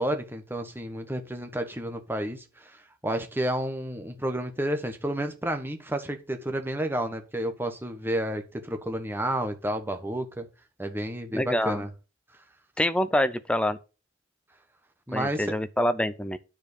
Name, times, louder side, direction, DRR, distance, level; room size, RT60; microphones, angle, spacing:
voice 1, 0.0-10.5 10.8-11.9 15.1-15.5, right 1 dB, 10° right, 1.2 m, -31 dB
voice 2, 11.3-11.8 12.8-13.8 15.1-16.4, left 1 dB, 5° left, 0.6 m, -26 dB
9.5 x 5.1 x 6.7 m
head